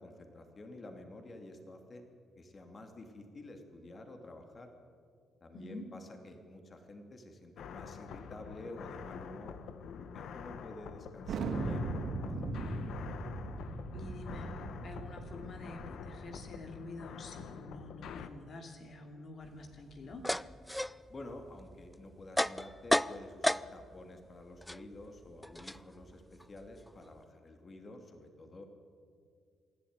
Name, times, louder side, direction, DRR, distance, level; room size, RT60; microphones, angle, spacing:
voice 1, 0.0-2.0 2.4-4.7 5.4-9.6 10.1-12.8 21.1-28.7, left 1 dB, 35° left, 4 dB, 2.7 m, -50 dB
voice 2, 5.5-5.9 13.9-20.3, left 2 dB, 55° left, 3 dB, 2.7 m, -48 dB
sound 1, 7.6-18.3, left 7 dB, 75° left, 1.2 m, -47 dB
Thunder, 11.3-16.4, right 2 dB, 70° right, 3.6 m, -39 dB
sound 2, 19.4-24.0 24.3-27.2, left 1 dB, 5° left, 0.5 m, -35 dB
26.5 x 11.5 x 9.6 m, 2.2 s
cardioid pair, 90°, 0 cm